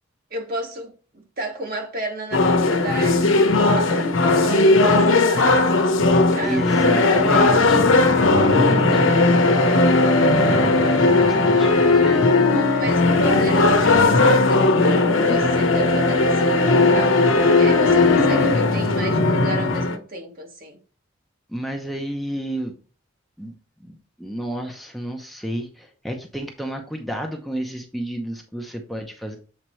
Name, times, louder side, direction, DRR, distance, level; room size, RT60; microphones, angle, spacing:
voice 1, 0.3-5.6 6.1-6.8 12.4-17.1 17.5-20.8, right 1 dB, 50° right, 1.6 m, -32 dB
sound 1, 2.3-20.0, left 3 dB, 90° left, 1.0 m, -17 dB
voice 2, 6.4-9.0 10.3-12.3 21.5-22.7 23.4-23.5 23.8-29.4, equal, ahead, 0.7 m, -30 dB
7.6 x 4.3 x 3.1 m
head